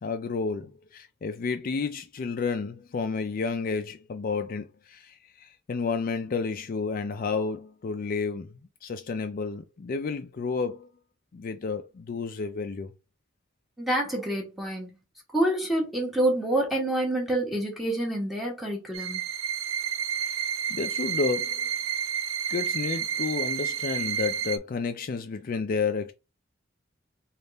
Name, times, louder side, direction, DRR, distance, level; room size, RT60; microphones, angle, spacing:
voice 1, 0.0-10.9 11.3-12.9 20.2-20.4 20.7-21.7 22.5-26.1, left 4 dB, 45° left, 0.4 m, -31 dB
voice 2, 13.8-14.9 15.3-19.2, right 1 dB, ahead, 1.3 m, -27 dB
sound 1, 18.9-24.6, right 8 dB, 90° right, 0.5 m, -30 dB
3.5 x 2.4 x 4.0 m
head